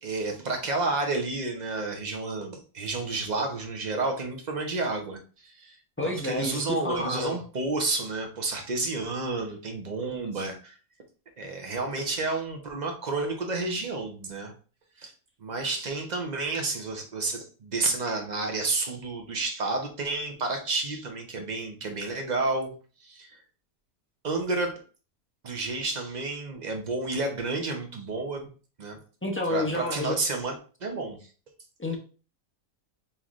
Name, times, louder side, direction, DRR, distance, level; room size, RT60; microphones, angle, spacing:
voice 1, 0.0-5.8 6.0-10.8 11.4-14.5 15.0-15.1 15.4-22.7 23.0-23.4 24.2-24.8 25.4-28.5 28.8-29.0 29.5-30.5 30.8-31.3, right 3 dB, 35° right, 3 dB, 0.8 m, -30 dB
voice 2, 6.0-7.4 29.2-30.2 31.8-32.0, left 2 dB, 20° left, 1 dB, 0.3 m, -29 dB
5.5 x 3.2 x 2.4 m, 0.38 s
omnidirectional pair, 1.5 m